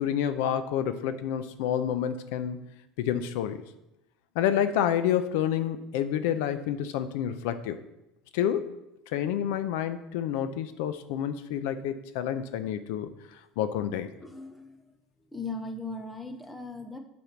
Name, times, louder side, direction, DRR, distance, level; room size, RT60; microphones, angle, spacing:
voice 1, 0.0-2.6 3.0-3.6 4.4-7.8 8.3-8.7 9.1-13.1 13.6-14.1, left 9 dB, 75° left, 12 dB, 0.5 m, -29 dB
voice 2, 14.2-14.8 15.3-17.0, left 3 dB, 5° left, 6 dB, 0.6 m, -38 dB
8.3 x 4.4 x 5.9 m, 0.90 s
cardioid pair, 175°, 0 cm